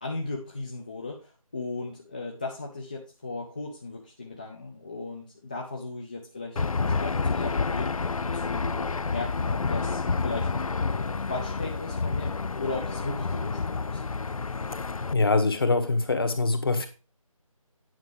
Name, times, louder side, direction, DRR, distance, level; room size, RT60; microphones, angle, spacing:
voice 1, 0.0-7.9 8.2-12.3 12.6-14.0, left 3 dB, 15° left, 0.6 m, -37 dB
Aircraft / Engine, 6.6-15.1, left 4 dB, 75° left, 0.5 m, -29 dB
voice 2, 15.1-16.9, left 3 dB, 40° left, 1.6 m, -23 dB
9.5 x 5.8 x 5.0 m
figure-of-eight pair, 160°, 18 cm